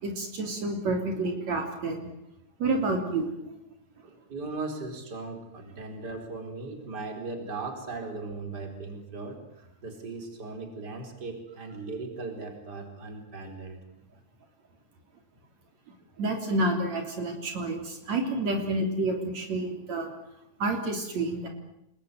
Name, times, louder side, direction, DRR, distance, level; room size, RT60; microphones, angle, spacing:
voice 1, 0.0-2.1 2.6-3.6 16.2-20.1 20.6-21.5, right 2 dB, 65° right, 3 dB, 4.5 m, -29 dB
voice 2, 4.0-13.8, right 3 dB, 35° right, 5 dB, 4.7 m, -38 dB
29.0 x 21.0 x 9.3 m, 0.80 s
omnidirectional pair, 3.4 m